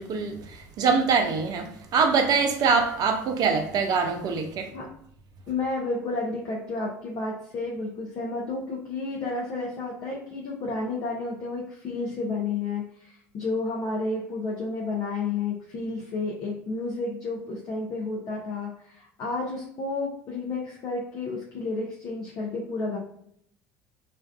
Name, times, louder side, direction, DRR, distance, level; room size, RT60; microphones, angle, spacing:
voice 1, 0.0-4.7, right 5 dB, 50° right, 0.5 m, -24 dB
voice 2, 5.5-23.0, left 3 dB, 50° left, 0.6 m, -31 dB
2.5 x 2.2 x 2.2 m
hypercardioid pair, 65°, 9 cm